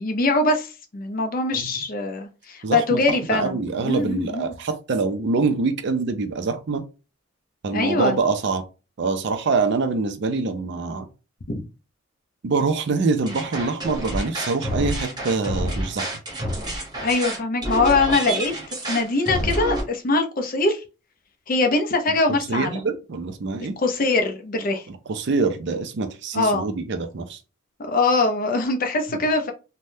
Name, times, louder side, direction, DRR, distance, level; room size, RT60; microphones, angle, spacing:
voice 1, 0.0-3.6 3.8-4.5 7.7-8.1 11.5-11.6 17.0-18.5 18.9-20.8 21.5-22.8 23.8-24.8 26.3-26.6 27.9-29.5, left 3 dB, 40° left, 0.5 m, -22 dB
voice 2, 2.6-6.9 7.6-8.6 9.0-11.1 12.4-16.1 22.5-23.8 25.1-27.4, right 4 dB, 55° right, 0.4 m, -25 dB
sound 1, 13.3-19.8, right 1 dB, 20° right, 0.9 m, -28 dB
3.3 x 2.1 x 2.6 m
head